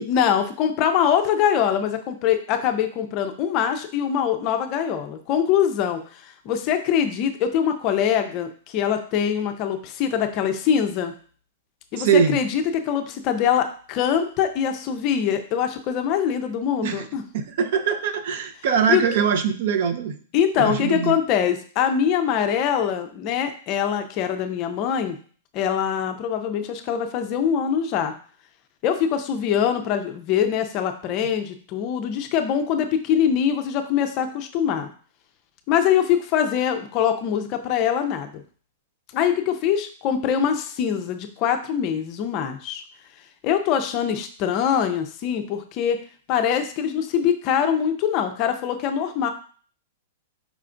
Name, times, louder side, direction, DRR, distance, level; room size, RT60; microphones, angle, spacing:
voice 1, 0.0-11.1 11.9-17.2 18.9-19.0 20.3-25.2 25.5-28.1 28.8-34.9 35.7-38.4 39.1-42.8 43.4-46.0 46.3-49.3, left 8 dB, 30° left, 7 dB, 0.4 m, -23 dB
voice 2, 12.0-12.4 16.8-17.0 17.3-20.2 20.6-21.2, right 7 dB, 50° right, 9 dB, 0.5 m, -22 dB
4.9 x 2.3 x 3.7 m, 0.43 s
supercardioid pair, 165°, 0 cm